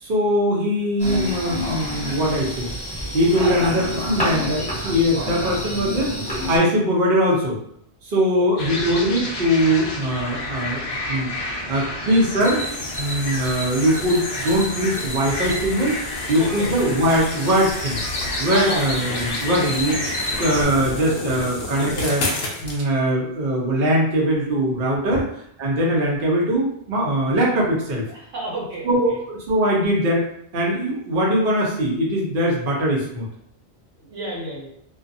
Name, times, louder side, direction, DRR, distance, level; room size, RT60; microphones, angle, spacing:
voice 1, 0.0-2.7 3.1-7.6 8.0-11.3 11.7-12.6 13.0-16.0 16.3-18.0 18.4-20.0 20.4-22.2 22.6-25.2 25.6-28.0 28.8-30.2 30.5-33.3, equal, 50° right, -4 dB, 0.9 m, -21 dB
sound 1, 1.0-6.6, equal, 5° left, 0.8 m, -28 dB
voice 2, 3.2-3.7 8.3-8.6 16.4-16.7 18.5-18.9 21.8-22.0 28.1-29.0 34.0-34.7, right 1 dB, 90° right, -3 dB, 1.2 m, -31 dB
sound 2, 8.6-20.6, left 1 dB, 45° left, 0.4 m, -29 dB
sound 3, 12.4-22.8, left 2 dB, 65° left, 0.8 m, -32 dB
2.4 x 2.3 x 2.5 m, 0.69 s
omnidirectional pair, 1.2 m